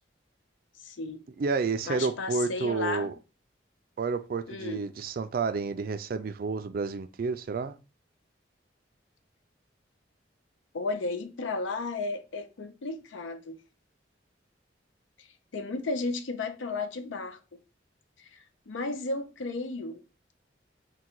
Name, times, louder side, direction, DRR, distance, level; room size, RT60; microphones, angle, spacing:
voice 1, 0.8-1.2 1.9-3.1 4.5-4.8 10.7-13.6 15.5-17.4 18.3-20.0, left 3 dB, 90° left, 0.6 m, -34 dB
voice 2, 1.4-3.1 4.0-7.8, right 4 dB, 50° right, 0.3 m, -30 dB
3.7 x 2.3 x 4.4 m
head